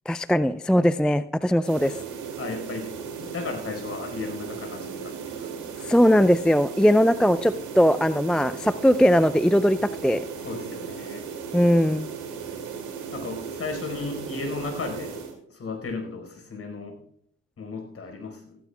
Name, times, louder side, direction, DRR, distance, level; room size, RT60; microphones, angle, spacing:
voice 1, 0.1-1.9 5.8-10.2 11.5-12.1, equal, 5° left, 14 dB, 0.4 m, -20 dB
sound 1, 1.6-15.4, right 6 dB, 70° right, 2.6 m, -36 dB
voice 2, 2.4-5.9 10.4-11.2 13.1-17.0 17.6-18.6, left 4 dB, 45° left, 3 dB, 4.7 m, -35 dB
16.5 x 15.0 x 2.3 m, 0.68 s
hypercardioid pair, 50°, 32 cm